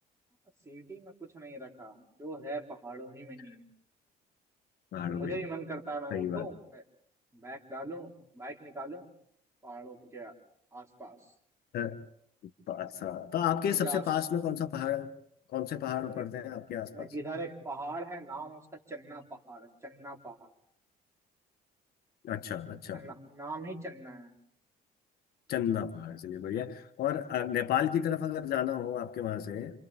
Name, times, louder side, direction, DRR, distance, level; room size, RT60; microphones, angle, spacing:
voice 1, 0.6-3.7 5.0-6.8 7.3-9.1 9.6-10.4 10.7-11.2 13.6-14.1 16.1-16.2 16.9-18.6 18.9-20.5 22.9-24.3, right 2 dB, 15° right, -1 dB, 4.1 m, -41 dB
voice 2, 4.9-5.4 6.1-6.5 11.7-12.0 12.7-15.1 15.5-17.1 22.2-23.0 25.5-29.8, left 10 dB, 65° left, 8 dB, 1.4 m, -32 dB
29.0 x 27.5 x 3.6 m, 0.69 s
cardioid pair, 110°, 17 cm